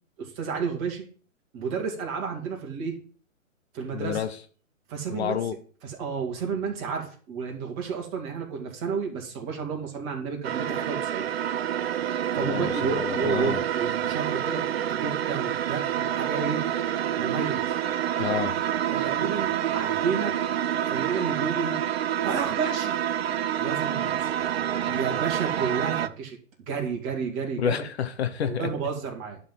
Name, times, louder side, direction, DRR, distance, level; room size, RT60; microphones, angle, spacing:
voice 1, 0.2-1.1 1.5-3.0 3.7-4.2 4.9-5.4 5.8-11.3 12.3-16.6 17.2-17.6 18.9-20.4 20.9-21.8 22.2-22.9 23.6-24.3 24.9-26.4 26.7-27.8 28.4-29.4, right 6 dB, 30° right, 1 dB, 2.7 m, -31 dB
voice 2, 3.9-4.4 5.1-5.5 12.3-13.6 18.2-18.6 27.6-28.7, left 9 dB, 50° left, 9 dB, 1.1 m, -29 dB
sound 1, 10.4-26.1, right 10 dB, 50° right, 0.7 m, -28 dB
11.0 x 4.3 x 7.6 m, 0.42 s
hypercardioid pair, 150°, 41 cm